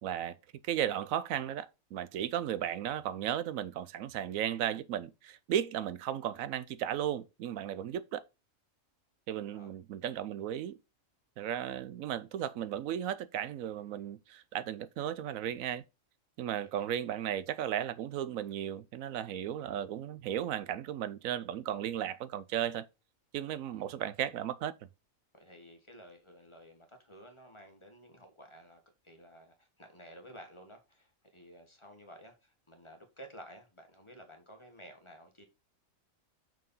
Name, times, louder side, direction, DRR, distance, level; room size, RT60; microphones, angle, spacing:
voice 1, 0.0-0.4 0.6-8.2 9.3-10.8 11.4-15.8 16.4-22.9 23.3-24.7, right 10 dB, 85° right, 1.0 m, -35 dB
voice 2, 25.3-35.4, equal, 20° left, 1.5 m, -53 dB
6.0 x 4.7 x 5.5 m
omnidirectional pair, 1.4 m